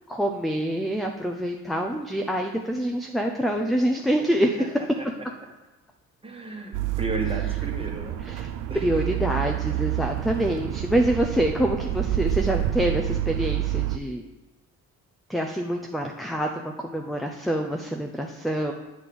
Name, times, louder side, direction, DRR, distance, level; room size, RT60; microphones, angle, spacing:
voice 1, 0.1-4.6 8.3-8.5 8.8-14.2 15.3-18.7, right 1 dB, ahead, 3 dB, 0.5 m, -26 dB
voice 2, 4.3-4.7 5.0-5.1 6.2-8.2 8.7-9.4 9.7-9.8, right 3 dB, 15° right, 1 dB, 1.3 m, -35 dB
sound 1, 6.7-14.0, right 13 dB, 75° right, 0.5 m, -28 dB
8.1 x 3.6 x 6.0 m, 1.1 s
cardioid pair, 105°, 32 cm